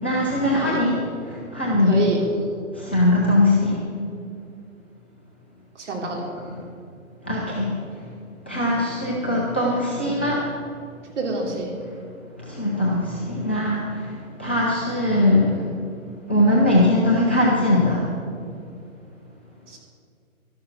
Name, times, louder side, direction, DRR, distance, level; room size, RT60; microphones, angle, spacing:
voice 1, 0.0-1.0 1.3-2.1 2.7-3.8 6.5-6.6 7.2-7.7 8.5-10.5 12.4-15.6 16.3-18.1, left 1 dB, 10° left, -6 dB, 0.4 m, -21 dB
voice 2, 1.9-2.2 5.8-6.2 11.2-11.7 19.7-19.8, right 3 dB, 55° right, -1 dB, 3.5 m, -27 dB
13.0 x 11.5 x 6.0 m, 2.4 s
figure-of-eight pair, 130°, 42 cm